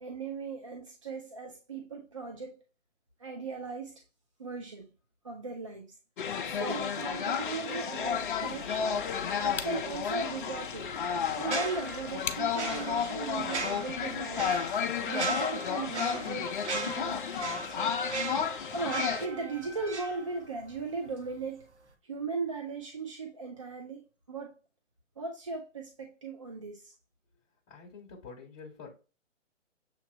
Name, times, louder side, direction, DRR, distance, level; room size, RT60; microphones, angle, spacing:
voice 1, 0.0-2.6 3.2-4.0 4.4-4.8 5.2-5.9 6.4-9.0 9.4-10.9 11.3-14.6 15.0-16.5 16.8-17.8 18.7-21.7 22.0-24.5 25.2-26.9, right 4 dB, 25° right, 0.4 m, -38 dB
sound 1, 6.2-19.3, left 7 dB, 40° left, 0.6 m, -32 dB
sound 2, 8.0-14.8, left 6 dB, 75° left, 0.9 m, -46 dB
sound 3, 11.4-20.8 21.1-21.3, right 3 dB, 65° right, 1.2 m, -38 dB
voice 2, 27.7-28.9, left 5 dB, 15° left, 1.0 m, -47 dB
6.9 x 2.9 x 2.6 m
hypercardioid pair, 145°, 37 cm